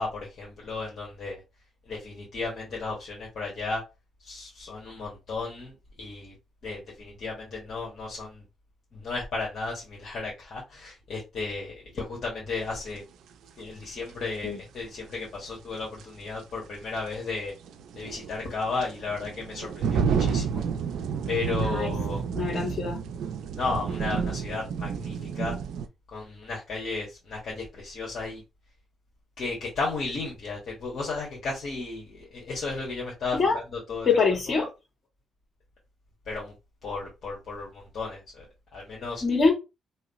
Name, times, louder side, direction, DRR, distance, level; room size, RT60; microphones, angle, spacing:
voice 1, 0.0-1.4 1.9-3.8 4.2-5.7 6.0-6.3 6.6-8.4 8.9-13.0 13.6-17.5 17.9-20.6 21.3-22.2 23.5-25.5 26.1-28.4 29.4-34.1 36.3-36.5 36.8-38.5 38.7-39.2, left 3 dB, 60° left, 1.3 m, -34 dB
sound 1, 12.9-13.0 15.4-15.5 16.0-16.1 17.6-25.9, right 6 dB, 80° right, 0.4 m, -30 dB
voice 2, 22.3-23.0 33.3-33.6 34.0-34.7 39.2-39.5, left 4 dB, 45° left, 1.9 m, -24 dB
3.1 x 2.1 x 3.9 m
cardioid pair, 85°, 0 cm